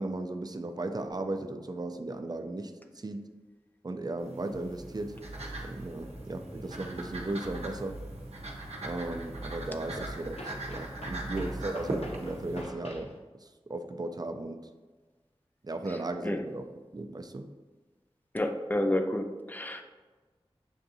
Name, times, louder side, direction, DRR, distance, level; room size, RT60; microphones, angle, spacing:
voice 1, 0.0-3.3 3.8-5.2 5.6-8.0 8.8-14.7 15.6-17.5, right 2 dB, 40° right, 7 dB, 0.4 m, -36 dB
sound 1, 4.2-12.6, right 1 dB, 85° right, 0.7 m, -39 dB
sound 2, 7.9-8.0 10.3-13.2, left 1 dB, 80° left, 0.8 m, -45 dB
voice 2, 18.3-19.8, left 1 dB, 15° left, 5 dB, 0.5 m, -29 dB
6.8 x 2.6 x 2.7 m, 1.3 s
wide cardioid pair, 40°, 11 cm